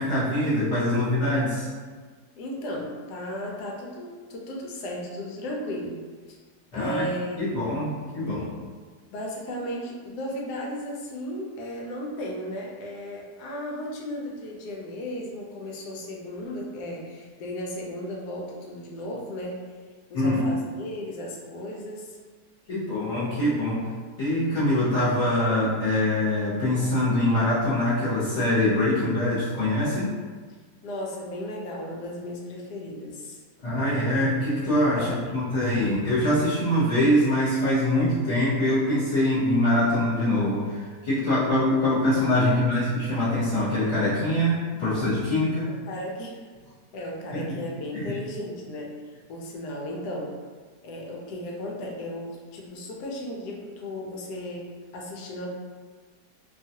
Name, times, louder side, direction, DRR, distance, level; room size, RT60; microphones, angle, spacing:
voice 1, 0.0-1.7 6.7-7.1 7.4-8.5 20.1-20.4 22.7-23.9 24.2-30.1 33.6-45.7 47.3-47.6 47.9-48.2, left 1 dB, 50° left, -12 dB, 1.2 m, -24 dB
voice 2, 2.4-6.0 6.3-6.4 6.7-7.4 9.1-19.6 20.1-22.2 30.8-33.4 35.0-35.2 45.7-46.4 46.9-49.0 49.3-50.3 50.8-55.5, left 1 dB, 75° left, -1 dB, 1.1 m, -35 dB
2.8 x 2.3 x 2.7 m, 1.5 s
omnidirectional pair, 1.8 m